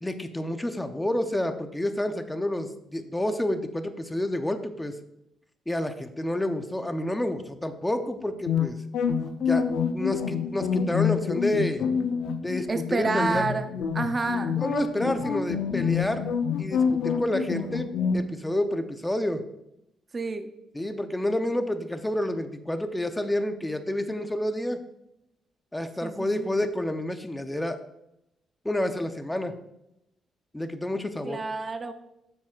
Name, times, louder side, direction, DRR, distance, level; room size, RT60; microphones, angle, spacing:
voice 1, 0.0-5.0 5.7-8.8 9.4-11.8 12.4-13.5 14.6-16.2 16.6-17.9 18.1-19.4 20.7-24.8 25.7-27.8 28.6-29.6 30.5-31.4, left 1 dB, 10° left, 8 dB, 0.8 m, -29 dB
sound 1, 8.5-18.2, left 7 dB, 75° left, 0.7 m, -27 dB
voice 2, 12.7-13.7 13.9-14.6 20.1-20.5 26.0-26.5 31.2-31.9, right 3 dB, 30° right, 8 dB, 0.6 m, -29 dB
10.5 x 7.4 x 2.5 m, 0.83 s
cardioid pair, 90°, 0 cm